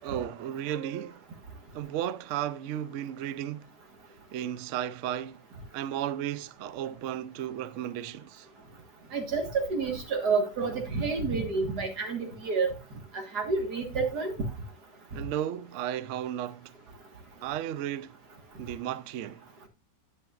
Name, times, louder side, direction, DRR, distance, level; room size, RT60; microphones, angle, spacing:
voice 1, 0.0-1.3 1.7-3.7 4.3-5.4 5.7-8.5 15.1-16.8 17.4-18.2 18.6-19.5, right 11 dB, 80° right, 0.6 m, -34 dB
voice 2, 9.1-12.7 13.1-14.3, right 4 dB, 65° right, 2.1 m, -29 dB
10.5 x 8.3 x 2.4 m
omnidirectional pair, 1.9 m